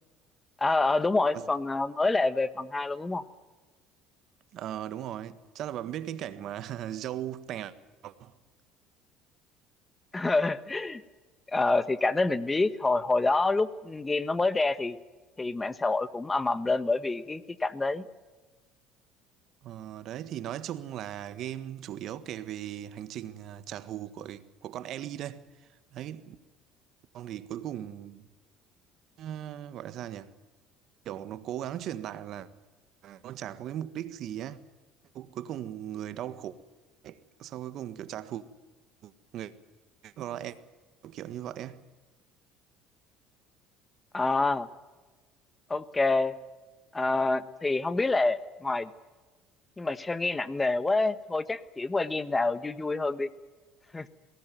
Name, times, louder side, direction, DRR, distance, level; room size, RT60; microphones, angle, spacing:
voice 1, 0.6-3.2 10.1-11.0 11.5-15.0 15.4-18.0 44.1-44.7 45.7-46.3 46.9-48.9 49.8-53.3 53.9-54.1, left 3 dB, 20° left, 1.4 m, -27 dB
voice 2, 4.5-7.7 8.0-8.3 19.6-25.4 25.9-26.4 27.1-28.3 29.2-30.3 31.0-32.5 33.0-34.6 35.1-36.6 37.0-38.4 39.0-39.5 40.0-40.6 41.0-41.8, right 11 dB, 60° right, 1.6 m, -38 dB
22.5 x 18.5 x 9.2 m
supercardioid pair, 90°, 0 cm